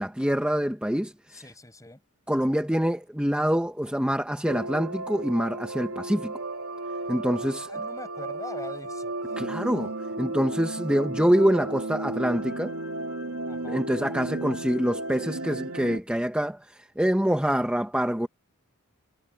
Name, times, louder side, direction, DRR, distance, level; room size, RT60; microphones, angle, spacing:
voice 1, 0.0-1.4 2.3-6.3 7.1-7.7 9.4-12.7 13.7-18.3, equal, 5° right, 1.4 m, -26 dB
voice 2, 1.3-2.0 7.7-9.7 13.5-13.8, left 2 dB, 15° left, 6.4 m, -43 dB
sound 1, 4.5-16.0, right 2 dB, 75° right, 2.6 m, -34 dB
head